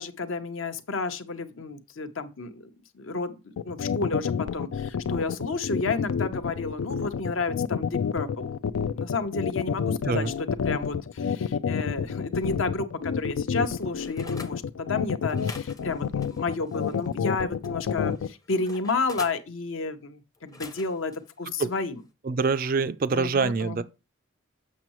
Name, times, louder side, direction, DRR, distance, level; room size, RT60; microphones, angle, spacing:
voice 1, 0.0-2.7 2.9-3.4 3.6-8.5 8.9-22.0 23.1-23.8, left 3 dB, 70° left, 0.8 m, -31 dB
sound 1, 3.6-18.3, left 6 dB, 85° left, 0.4 m, -28 dB
sound 2, 13.5-14.6 15.3-17.2 17.6-19.4 20.3-21.2 21.7-21.9, left 3 dB, 15° left, 0.6 m, -45 dB
voice 2, 22.2-23.8, right 4 dB, 40° right, 0.3 m, -25 dB
7.4 x 6.2 x 3.0 m
head